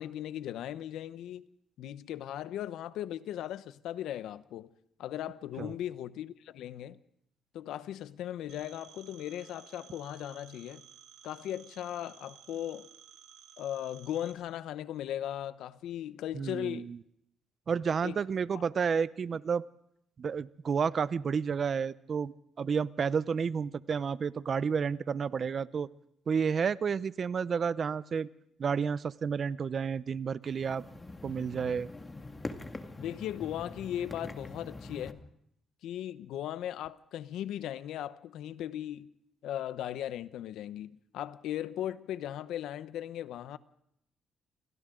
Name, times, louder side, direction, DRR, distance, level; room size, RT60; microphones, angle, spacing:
voice 1, 0.0-1.5 1.8-4.7 5.0-7.0 7.5-10.8 11.2-12.9 13.6-16.9 18.0-18.2 18.5-18.6 33.0-35.2 35.8-39.1 39.4-43.6, left 11 dB, 85° left, 0.9 m, -38 dB
Telephone, 8.5-14.3, right 10 dB, 80° right, 6.0 m, -55 dB
voice 2, 16.3-17.0 17.7-19.6 20.2-25.9 26.3-28.3 28.6-30.8 31.2-31.9, right 6 dB, 45° right, 0.7 m, -31 dB
sound 1, 30.5-35.1, left 2 dB, 20° left, 2.2 m, -44 dB
28.5 x 24.5 x 3.8 m
cardioid pair, 90°, 0 cm